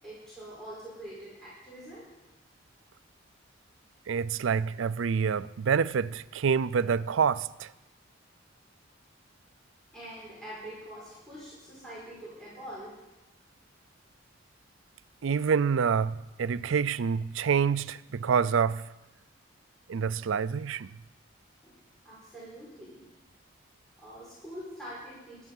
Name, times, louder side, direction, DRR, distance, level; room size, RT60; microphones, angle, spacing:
voice 1, 0.0-2.1 9.9-13.0 21.6-21.8 22.0-23.0 24.0-25.5, equal, ahead, 5.0 m, -44 dB
voice 2, 4.1-7.7 15.2-18.8 19.9-20.9, right 6 dB, 85° right, 0.4 m, -27 dB
18.0 x 12.0 x 5.4 m
head